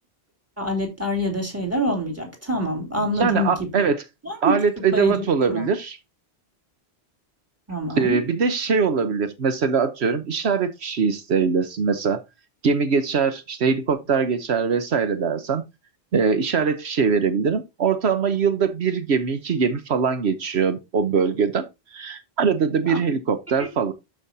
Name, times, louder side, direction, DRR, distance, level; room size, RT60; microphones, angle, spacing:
voice 1, 0.6-3.8 4.2-4.6 4.9-5.2 5.5-5.6 7.7-8.2 22.9-23.0 23.6-23.7, equal, 15° right, 3.5 m, -25 dB
voice 2, 3.2-4.0 4.4-6.0 8.0-12.2 12.6-15.6 16.1-21.7 21.9-23.9, right 5 dB, 80° right, 1.2 m, -22 dB
12.0 x 5.6 x 2.7 m
omnidirectional pair, 1.1 m